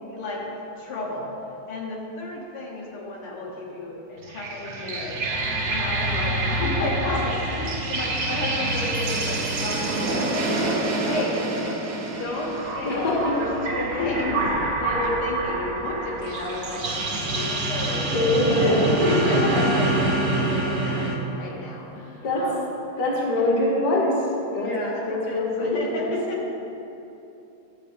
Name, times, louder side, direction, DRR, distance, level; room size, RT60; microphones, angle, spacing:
voice 1, 0.0-1.4 1.7-11.4 12.2-16.9 17.2-22.6 24.5-26.5, left 2 dB, 80° left, -4 dB, 2.0 m, -32 dB
sound 1, 4.2-21.2, right 2 dB, 55° right, 0.8 m, -26 dB
voice 2, 12.8-13.4 18.1-18.9 22.2-22.6 23.0-24.7 25.1-26.2, left 1 dB, 50° left, -4 dB, 1.9 m, -23 dB
12.0 x 7.4 x 3.4 m, 2.9 s
omnidirectional pair, 2.4 m